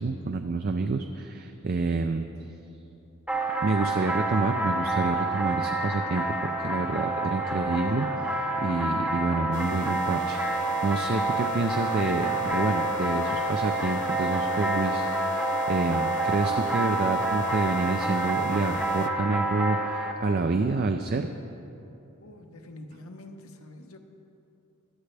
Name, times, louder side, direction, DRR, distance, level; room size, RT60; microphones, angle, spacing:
voice 1, 0.0-2.3 3.6-21.3, right 3 dB, 45° right, 6 dB, 0.4 m, -28 dB
sound 1, 3.3-20.1, right 2 dB, 5° right, 0.8 m, -28 dB
sound 2, 9.5-19.1, left 4 dB, 55° left, 0.6 m, -40 dB
voice 2, 22.2-24.0, left 1 dB, 75° left, 4 dB, 1.0 m, -45 dB
16.0 x 12.5 x 3.4 m, 2.9 s
head